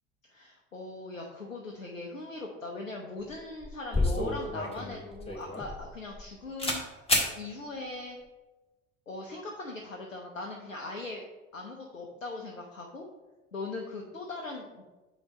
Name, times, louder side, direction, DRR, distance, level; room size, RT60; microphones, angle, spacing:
voice 1, 0.3-8.2 9.1-11.2 11.5-13.0 13.5-14.8, left 2 dB, 90° left, 0 dB, 0.8 m, -40 dB
sound 1, 3.2-3.3 3.6-6.3 6.6-6.8 7.1-7.3, left 1 dB, 15° left, 2.0 m, -29 dB
8.4 x 3.1 x 6.1 m, 1.1 s
figure-of-eight pair, 65°, 38 cm